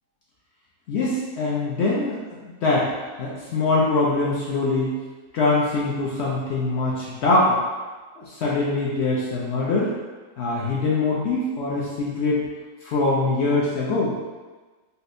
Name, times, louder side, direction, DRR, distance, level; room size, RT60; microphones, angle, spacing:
voice 1, 0.9-2.9 3.2-4.9 5.3-7.6 8.2-9.9 10.4-12.4 12.8-14.1, left 3 dB, 70° left, -5 dB, 0.6 m, -23 dB
4.2 x 2.1 x 2.5 m, 1.3 s
omnidirectional pair, 1.7 m